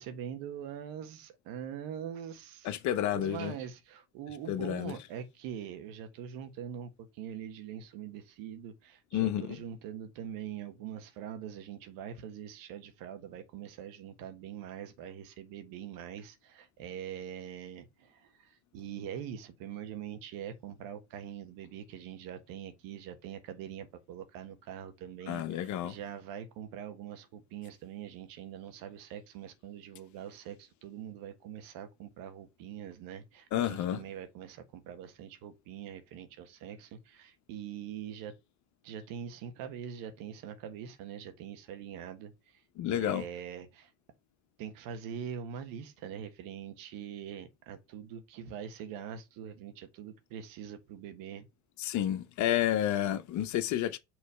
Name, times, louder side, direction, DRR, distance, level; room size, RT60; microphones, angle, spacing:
voice 1, 0.0-2.8 3.1-38.3 38.8-42.6 42.9-43.9 44.6-51.5, right 9 dB, 65° right, 1.4 m, -43 dB
voice 2, 2.6-3.5 4.5-4.9 9.1-9.6 25.3-26.0 33.5-34.0 42.8-43.2 51.8-54.0, left 11 dB, 50° left, 0.8 m, -30 dB
5.9 x 3.1 x 5.4 m
hypercardioid pair, 80°, 37 cm